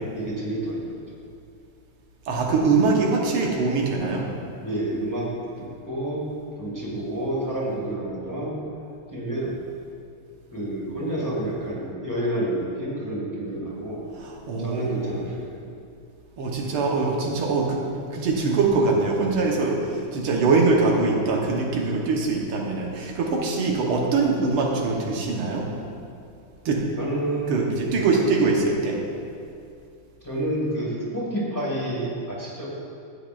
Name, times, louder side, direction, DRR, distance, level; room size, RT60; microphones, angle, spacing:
voice 1, 0.1-1.0 4.6-5.3 5.6-6.2 6.6-8.5 9.1-9.6 10.5-14.0 14.6-15.5 27.0-27.6 28.0-28.1 30.2-32.7, right 1 dB, 10° left, -6 dB, 1.5 m, -29 dB
voice 2, 2.3-4.3 14.2-15.2 16.4-17.8 18.1-25.7 26.7-26.8 27.5-29.0, right 3 dB, 90° right, -1 dB, 2.0 m, -23 dB
13.5 x 8.3 x 2.5 m, 2.5 s
omnidirectional pair, 2.3 m